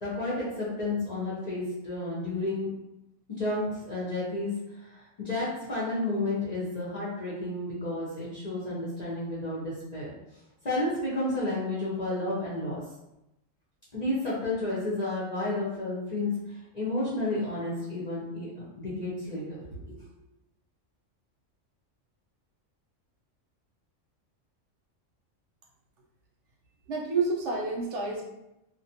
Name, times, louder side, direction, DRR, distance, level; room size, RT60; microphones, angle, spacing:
voice 1, 0.0-2.7 3.4-4.5 4.8-10.1 10.6-12.8 13.9-16.3 16.7-20.0, left 2 dB, 45° left, -8 dB, 0.6 m, -31 dB
voice 2, 26.9-28.3, right 3 dB, 70° right, -1 dB, 0.9 m, -29 dB
2.4 x 2.1 x 2.7 m, 0.91 s
omnidirectional pair, 1.3 m